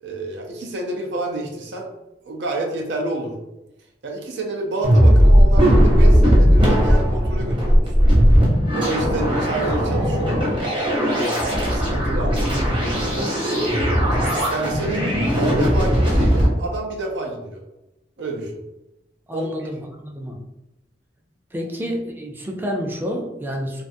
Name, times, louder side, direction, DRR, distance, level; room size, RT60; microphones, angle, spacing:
voice 1, 0.0-1.9 2.2-3.3 4.0-8.1 8.7-13.7 14.1-14.2 14.5-15.1 15.3-17.6 18.2-18.5 19.3-19.5, right 2 dB, 85° right, 1 dB, 0.5 m, -29 dB
sound 1, 4.8-16.5, equal, 30° right, 0.8 m, -17 dB
voice 2, 19.3-20.4 21.5-23.8, equal, 10° right, 1 dB, 0.3 m, -29 dB
2.4 x 2.4 x 2.5 m, 0.95 s
head